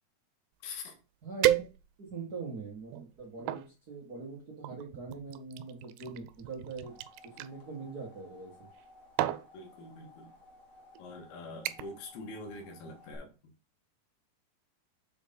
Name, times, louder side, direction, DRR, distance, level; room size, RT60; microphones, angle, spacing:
voice 1, 0.6-1.0 9.5-10.3 11.0-13.5, left 2 dB, 75° left, 4 dB, 3.2 m, -45 dB
sound 1, 0.8-0.9 1.4-2.2 2.8-3.7 4.6-7.5 8.6-8.9 9.2-9.5 10.4-10.5 11.0-11.2 11.7-12.1 12.4-12.7 13.1-13.2, right 14 dB, 85° right, 2.7 m, -33 dB
voice 2, 1.2-1.7 2.0-8.7, right 4 dB, 65° right, -3 dB, 0.9 m, -43 dB
sound 2, 6.4-13.1, left 2 dB, 30° left, 1.6 m, -57 dB
6.9 x 4.6 x 5.4 m, 0.32 s
omnidirectional pair, 4.8 m